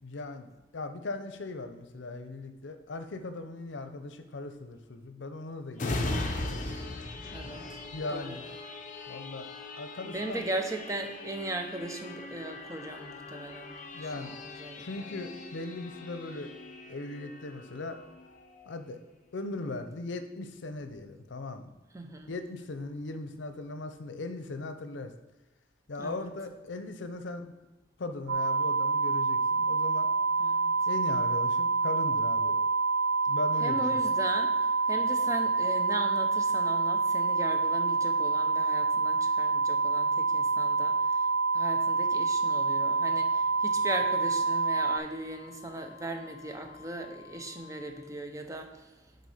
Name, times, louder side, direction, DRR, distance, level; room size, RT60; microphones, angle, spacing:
voice 1, 0.0-6.2 7.9-8.5 9.1-9.5 9.8-10.5 13.9-14.3 14.8-16.5 16.9-18.0 18.7-19.0 19.3-21.7 22.3-25.1 25.9-27.5 28.0-30.1 30.9-32.6 33.3-34.0, left 2 dB, 80° left, 8 dB, 0.6 m, -38 dB
sound 1, 5.8-19.1 19.5-19.7, left 2 dB, 45° left, 0.6 m, -39 dB
voice 2, 7.3-7.8 8.1-8.3 10.0-13.7 14.2-15.0 21.9-22.3 26.0-26.1 30.4-30.7 33.6-41.2 41.5-48.7, right 1 dB, 15° right, 4 dB, 0.7 m, -38 dB
sound 2, 28.3-45.0, right 4 dB, 75° right, 0.4 m, -27 dB
sound 3, 28.4-47.9, left 9 dB, 20° left, 2.5 m, -52 dB
6.8 x 4.1 x 4.9 m, 1.1 s
head